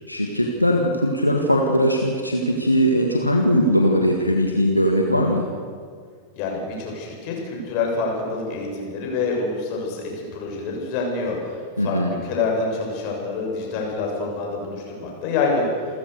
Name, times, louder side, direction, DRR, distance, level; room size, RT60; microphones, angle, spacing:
voice 1, 0.1-5.5 11.8-12.1, equal, 85° left, 1 dB, 1.9 m, -20 dB
voice 2, 6.3-15.7, left 4 dB, 45° left, 0 dB, 7.1 m, -27 dB
29.0 x 14.5 x 6.8 m, 2.1 s
figure-of-eight pair, 90°, 0 cm